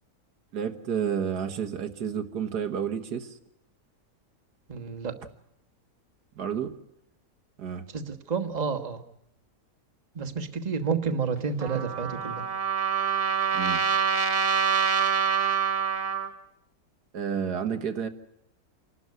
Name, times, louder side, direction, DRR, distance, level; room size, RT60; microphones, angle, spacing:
voice 1, 0.5-3.3 6.4-6.7 7.6-7.9 13.5-13.9 17.1-18.1, right 7 dB, 90° right, 8 dB, 2.0 m, -30 dB
voice 2, 4.7-5.2 7.9-9.0 10.1-12.4, right 5 dB, 30° right, 5 dB, 1.3 m, -30 dB
Trumpet, 11.6-16.3, right 7 dB, 70° right, 2.3 m, -26 dB
28.0 x 12.5 x 9.5 m, 0.83 s
omnidirectional pair, 1.7 m